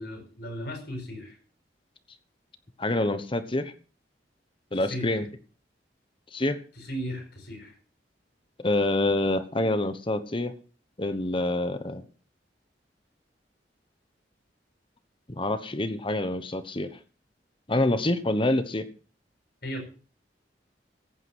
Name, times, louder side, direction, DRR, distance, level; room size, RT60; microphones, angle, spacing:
voice 1, 0.0-1.4 4.7-5.2 6.8-7.7 19.6-19.9, equal, 65° left, 5 dB, 5.0 m, -36 dB
voice 2, 2.8-3.7 4.7-5.2 6.3-6.6 8.6-10.5 11.0-12.0 15.3-17.0 17.7-18.8, left 2 dB, 30° left, 11 dB, 1.1 m, -26 dB
15.0 x 9.3 x 6.2 m, 0.39 s
head